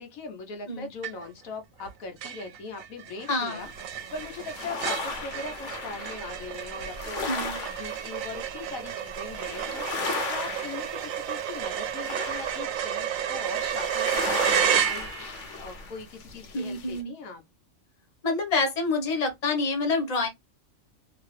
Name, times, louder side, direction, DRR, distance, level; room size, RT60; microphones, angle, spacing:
voice 1, 0.0-7.4 7.7-9.9 10.3-17.4, left 3 dB, 90° left, 1.3 m, -40 dB
sound 1, 1.0-1.5 1.8-1.9 2.2-15.5, right 9 dB, 80° right, 1.0 m, -31 dB
voice 2, 3.3-3.6 7.3-7.6 16.5-17.1 18.2-20.3, left 3 dB, 30° left, 1.0 m, -27 dB
sound 2, 3.6-17.0, left 3 dB, 65° left, 1.1 m, -36 dB
2.9 x 2.8 x 3.2 m
omnidirectional pair, 1.4 m